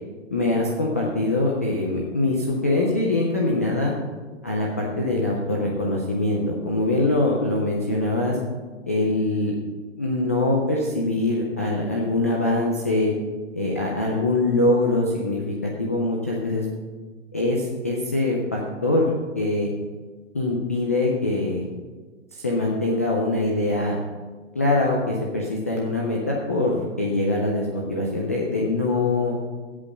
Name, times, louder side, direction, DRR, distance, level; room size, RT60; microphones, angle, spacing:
voice 1, 0.3-3.9 4.4-8.4 8.9-9.5 10.0-13.1 13.5-16.6 17.3-19.7 20.3-21.6 22.3-24.0 24.5-29.4, left 2 dB, 15° left, -3 dB, 0.3 m, -23 dB
15.5 x 5.3 x 6.1 m, 1.4 s
hypercardioid pair, 145°, 38 cm